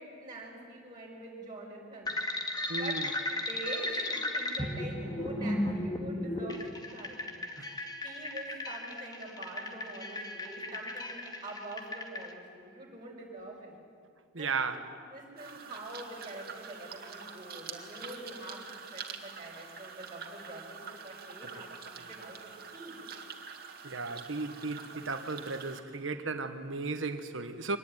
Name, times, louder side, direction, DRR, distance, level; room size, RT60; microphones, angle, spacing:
voice 1, 0.0-2.1 2.6-3.0 3.3-7.3 8.0-13.8 14.4-14.8 15.1-22.4 22.7-23.0, right 1 dB, 20° right, 5.1 m, -45 dB
sound 1, 2.1-12.3, left 1 dB, 20° left, 2.1 m, -35 dB
voice 2, 2.7-3.1 7.6-7.7 14.3-14.8 23.8-27.8, right 4 dB, 70° right, 1.3 m, -35 dB
sound 2, 15.4-25.8, right 6 dB, 50° right, 2.3 m, -46 dB
24.5 x 19.5 x 9.8 m
head